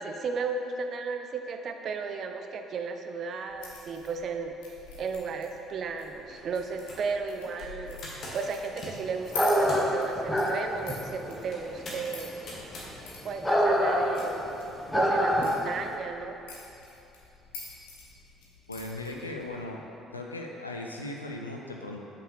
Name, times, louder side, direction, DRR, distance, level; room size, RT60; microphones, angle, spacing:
voice 1, 0.0-8.0 8.3-12.4 13.2-14.6 14.9-16.4, right 4 dB, 50° right, 6 dB, 0.4 m, -34 dB
sound 1, 3.5-19.7, left 4 dB, 70° left, 0.9 m, -47 dB
sound 2, 5.8-5.9 6.2-6.4 6.7-10.0 11.5-12.9 14.1-14.3, left 1 dB, 45° left, 1.2 m, -44 dB
sound 3, 9.3-15.8, equal, 10° left, 0.8 m, -26 dB
voice 2, 18.7-19.8 20.1-22.0, left 2 dB, 90° left, 0 dB, 0.4 m, -37 dB
5.5 x 5.2 x 3.3 m, 2.9 s
figure-of-eight pair, 50°, 0 cm